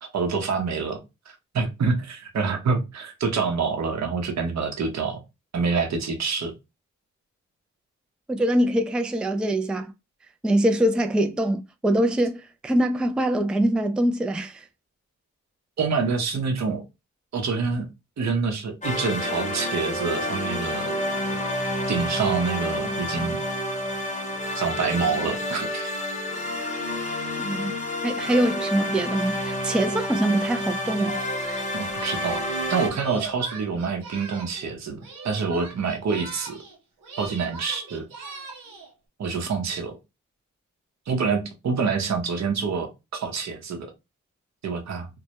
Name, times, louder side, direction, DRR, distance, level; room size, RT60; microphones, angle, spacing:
voice 1, 0.1-1.0 1.3-5.2 5.5-6.5 15.8-16.8 17.3-17.9 18.2-20.9 21.9-23.4 24.6-26.0 31.7-32.4 32.7-35.0 35.2-36.5 37.2-38.0 39.2-40.0 41.1-43.9 44.6-45.1, right 5 dB, 55° right, 0.8 m, -26 dB
voice 2, 8.3-9.9 10.4-14.6 27.4-27.7 28.0-31.2, right 1 dB, 5° right, 0.3 m, -23 dB
sound 1, 18.8-32.9, left 1 dB, 20° left, 0.8 m, -29 dB
Singing, 30.9-34.7 35.0-36.8 37.0-38.9, right 3 dB, 90° right, 0.7 m, -40 dB
2.2 x 2.1 x 2.8 m
supercardioid pair, 45°, 33 cm